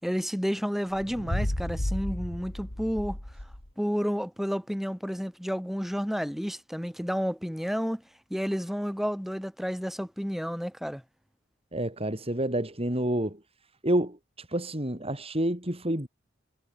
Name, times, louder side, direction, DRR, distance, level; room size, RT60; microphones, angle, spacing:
voice 1, 0.0-3.2 3.8-8.0 8.3-11.0, equal, ahead, 6.5 m, -31 dB
sound 1, 0.9-3.7, left 1 dB, 75° left, 3.6 m, -33 dB
voice 2, 11.7-13.4 13.8-14.2 14.5-16.1, right 1 dB, 30° right, 6.6 m, -28 dB
head